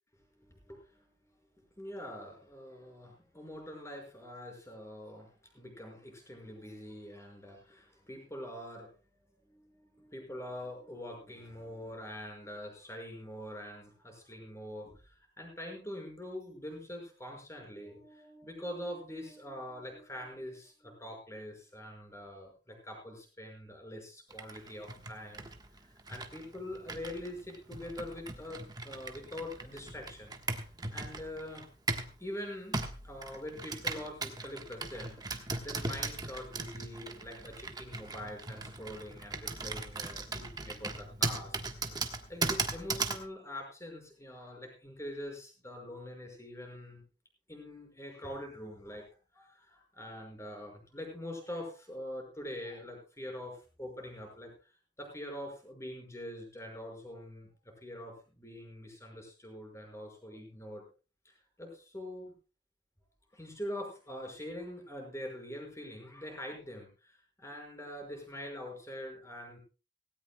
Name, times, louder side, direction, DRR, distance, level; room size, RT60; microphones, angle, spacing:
voice 1, 0.4-1.0 1.8-8.9 9.5-25.5 25.8-30.3 30.9-31.7 32.2-41.6 42.3-47.0 47.5-49.1 49.3-54.5 55.0-60.8 61.2-62.3 63.3-69.6, left 1 dB, 15° left, 2 dB, 5.8 m, -44 dB
Computer keyboard, 24.3-32.2 32.7-43.3, right 3 dB, 25° right, 1.4 m, -38 dB
17.5 x 17.5 x 2.3 m, 0.32 s
head